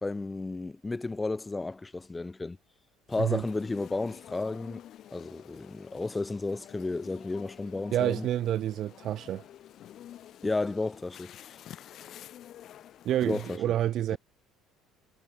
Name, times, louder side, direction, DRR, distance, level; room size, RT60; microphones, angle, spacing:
voice 1, 0.0-2.6 3.1-4.8 5.1-8.3 10.4-11.4 13.2-13.6 14.1-14.2, left 3 dB, 20° left, 2.9 m, -33 dB
sound 1, 3.1-13.6, left 11 dB, 55° left, 5.5 m, -49 dB
voice 2, 7.9-9.4 13.0-14.2, right 12 dB, 60° right, 2.2 m, -28 dB
hypercardioid pair, 65°, 0 cm